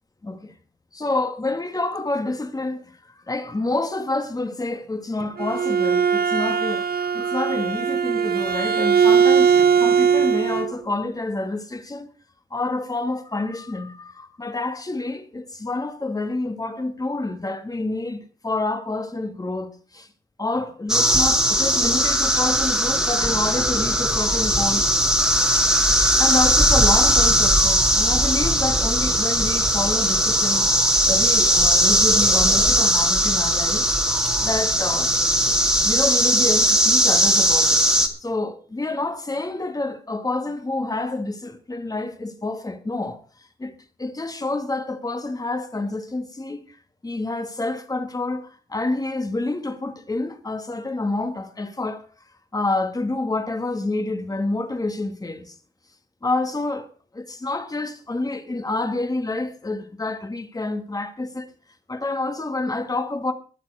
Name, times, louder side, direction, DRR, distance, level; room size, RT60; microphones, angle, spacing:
voice 1, 0.2-0.5 0.9-2.9 3.3-12.1 12.5-20.1 20.4-24.9 26.0-30.7 31.1-34.0 34.4-35.1 35.8-37.8 38.2-43.2 43.6-43.7 44.0-46.8 47.0-52.0 52.5-55.6 56.2-56.9 57.1-61.5 61.9-63.3, left 2 dB, 20° left, 1.9 m, -28 dB
Bowed string instrument, 5.2-10.7, right 7 dB, 60° right, 0.9 m, -19 dB
sound 1, 20.9-38.1, equal, 5° right, 2.2 m, -19 dB
22.0 x 7.4 x 4.9 m
wide cardioid pair, 140°, 18 cm